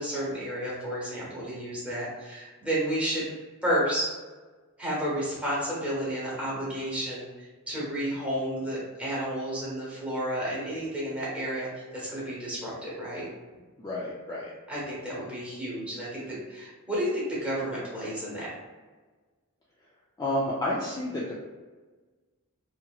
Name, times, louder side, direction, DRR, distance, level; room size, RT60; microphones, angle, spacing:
voice 1, 0.0-3.3 3.6-4.1 4.8-13.3 14.7-18.5, equal, 5° right, -8 dB, 1.0 m, -31 dB
voice 2, 13.8-14.5 20.2-21.3, left 1 dB, 20° left, -7 dB, 0.4 m, -30 dB
2.8 x 2.7 x 2.3 m, 1.3 s
head